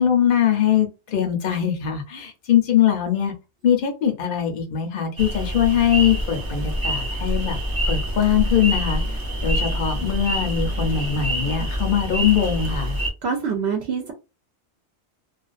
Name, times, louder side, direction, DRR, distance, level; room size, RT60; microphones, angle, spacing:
voice 1, 0.0-3.3 3.6-7.6 7.9-9.0 9.4-13.0, left 9 dB, 55° left, 0.7 m, -21 dB
sound 1, 5.2-13.1, equal, 40° right, 0.3 m, -26 dB
voice 2, 13.2-14.1, right 6 dB, 70° right, 0.8 m, -25 dB
2.4 x 2.3 x 2.4 m
omnidirectional pair, 1.2 m